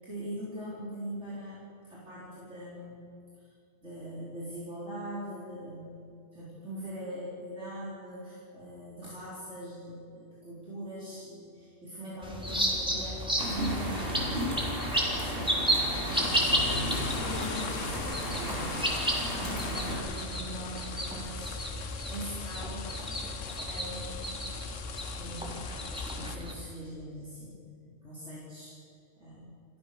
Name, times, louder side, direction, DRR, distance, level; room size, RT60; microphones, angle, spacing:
voice 1, 0.0-3.0 3.3-3.5 3.8-14.6 15.1-24.5 25.1-28.7 29.2-29.5, equal, 65° right, -7 dB, 4.7 m, -42 dB
sound 1, 12.2-26.5, equal, 5° right, 3.6 m, -33 dB
sound 2, 13.4-20.0, equal, 50° right, 5.8 m, -34 dB
sound 3, 16.1-26.4, left 7 dB, 80° left, 1.4 m, -41 dB
29.5 x 14.0 x 6.8 m, 2.4 s
omnidirectional pair, 1.3 m